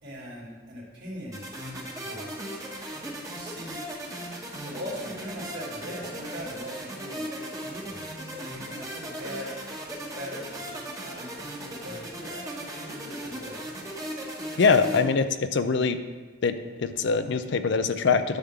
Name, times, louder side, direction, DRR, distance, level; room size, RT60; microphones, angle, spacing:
voice 1, 0.0-1.4 2.0-2.4 2.9-3.9 4.6-8.1 8.4-9.5 10.0-13.6, equal, 70° right, -5 dB, 3.0 m, -40 dB
sound 1, 1.3-15.0, right 1 dB, 20° right, 1.3 m, -37 dB
voice 2, 14.6-15.3 15.5-16.0 16.4-18.4, left 5 dB, 65° left, 10 dB, 0.5 m, -23 dB
10.5 x 3.7 x 7.2 m, 1.3 s
head